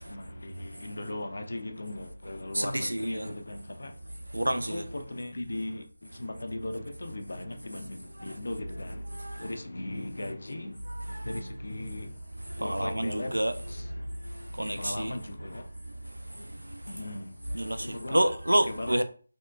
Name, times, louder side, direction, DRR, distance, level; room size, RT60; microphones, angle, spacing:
voice 1, 0.0-3.9 4.5-10.8 11.1-12.2 12.6-13.4 13.7-14.0 14.6-15.7 16.9-17.4 17.8-18.3 18.6-19.0, left 1 dB, 65° left, 0.4 m, -38 dB
voice 2, 2.5-3.3 4.3-4.9 8.2-8.3 9.1-9.5 10.9-11.3 12.5-13.5 14.3-15.1 16.4-16.8 17.5-19.0, right 1 dB, 85° right, 0.3 m, -29 dB
3.5 x 2.1 x 2.3 m
figure-of-eight pair, 160°, 0 cm